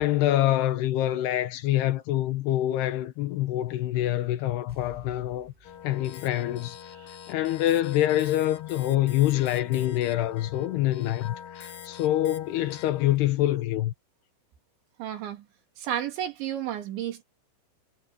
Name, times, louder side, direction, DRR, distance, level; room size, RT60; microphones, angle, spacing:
voice 1, 0.0-5.5 5.8-6.8 7.3-13.9, left 14 dB, 75° left, 2.7 m, -25 dB
sound 1, 4.7-7.9 8.1-8.2, right 1 dB, 10° right, 8.0 m, -54 dB
sound 2, 5.6-13.2, left 9 dB, 55° left, 3.4 m, -44 dB
voice 2, 6.9-7.5 15.0-15.5 15.8-17.2, right 10 dB, 80° right, 5.0 m, -33 dB
omnidirectional pair, 5.2 m